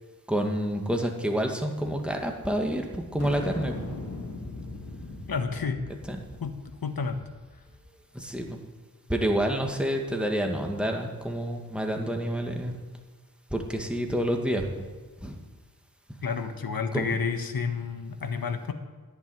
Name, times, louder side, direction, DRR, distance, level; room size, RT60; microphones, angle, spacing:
voice 1, 0.3-3.9 6.1-6.2 8.1-8.6 9.1-12.7 13.5-14.6 15.2-15.4 16.9-17.1, equal, 5° right, 2 dB, 2.2 m, -28 dB
sound 1, 3.2-7.9, left 2 dB, 40° left, 3.1 m, -39 dB
voice 2, 5.3-5.8 6.4-7.2 16.2-18.7, left 5 dB, 70° left, 7 dB, 1.4 m, -30 dB
11.5 x 11.0 x 9.4 m, 1.4 s
wide cardioid pair, 75°, 37 cm